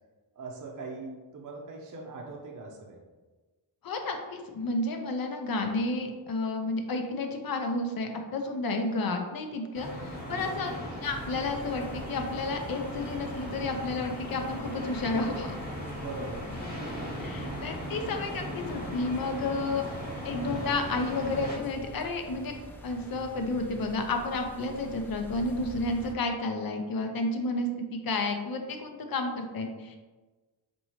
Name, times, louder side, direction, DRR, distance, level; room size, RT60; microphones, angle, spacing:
voice 1, 0.3-3.0 10.2-10.6 15.8-16.5, right 3 dB, 45° right, -1 dB, 0.6 m, -41 dB
voice 2, 3.8-10.7 11.0-15.6 17.2-22.5 22.8-30.0, left 2 dB, 50° left, 4 dB, 0.6 m, -31 dB
sound 1, 9.7-21.6, equal, 20° left, 1.1 m, -38 dB
sound 2, 11.0-26.1, equal, 5° left, 0.4 m, -47 dB
4.4 x 2.7 x 2.9 m, 1.2 s
wide cardioid pair, 105°, 46 cm